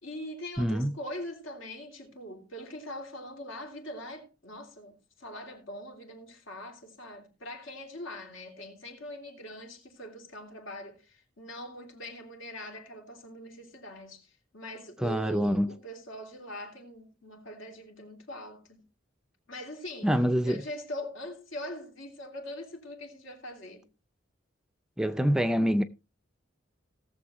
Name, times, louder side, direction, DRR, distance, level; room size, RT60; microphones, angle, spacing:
voice 1, 0.0-18.8 19.5-20.2 20.4-23.9, equal, 75° left, 3.0 m, -42 dB
voice 2, 0.6-0.9 15.0-15.7 20.0-20.6 25.0-25.8, equal, 5° right, 0.4 m, -25 dB
18.0 x 7.1 x 3.0 m
head